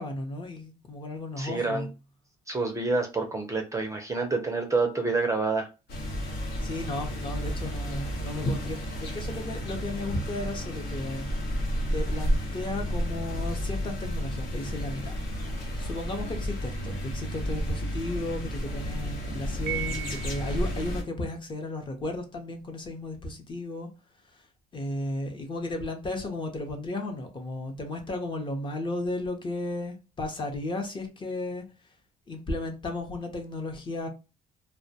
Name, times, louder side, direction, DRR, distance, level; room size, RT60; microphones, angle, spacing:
voice 1, 0.0-1.9 6.6-11.3 11.9-15.2 15.8-23.9 24.7-31.6 32.3-34.1, left 2 dB, 30° left, 0.6 m, -34 dB
voice 2, 1.4-1.9 2.5-5.7, right 3 dB, 20° right, 0.4 m, -28 dB
sound 1, 5.9-21.0, equal, 75° left, 0.9 m, -32 dB
Piano, 19.7-20.8, right 12 dB, 75° right, 0.5 m, -36 dB
2.2 x 2.1 x 2.7 m
cardioid pair, 110°, 17 cm